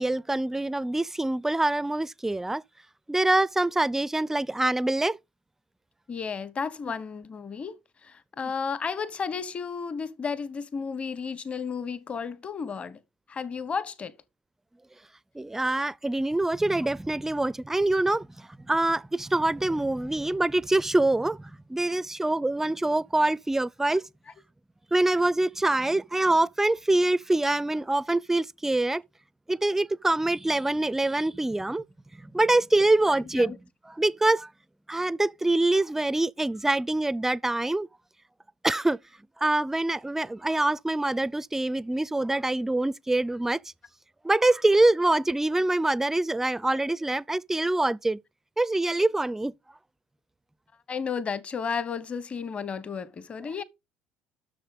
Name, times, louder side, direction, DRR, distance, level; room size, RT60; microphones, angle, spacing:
voice 1, 0.0-2.6 3.1-5.2 15.4-24.0 24.9-29.0 29.5-31.8 32.2-33.5 34.0-34.5 34.9-37.9 38.6-39.0 39.4-43.6 44.2-48.2 48.6-49.5, right 2 dB, 10° right, 0.4 m, -25 dB
voice 2, 6.1-13.0 13.3-14.1 33.3-33.6 50.9-53.6, left 6 dB, 35° left, 1.1 m, -33 dB
10.0 x 6.6 x 4.0 m
hypercardioid pair, 65°, 4 cm